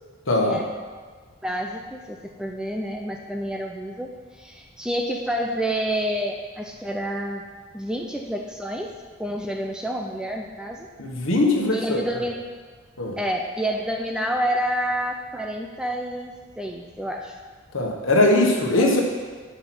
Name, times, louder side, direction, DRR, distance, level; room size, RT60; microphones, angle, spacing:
voice 1, 0.3-0.6 11.0-12.0 13.0-13.2 17.7-19.0, left 2 dB, 65° left, -1 dB, 1.3 m, -20 dB
voice 2, 1.4-4.1 4.4-7.5 7.7-8.9 9.2-10.9 11.7-12.4 13.2-17.3 18.8-18.9, equal, 5° right, 1 dB, 0.4 m, -28 dB
8.0 x 5.7 x 6.0 m, 1.5 s
head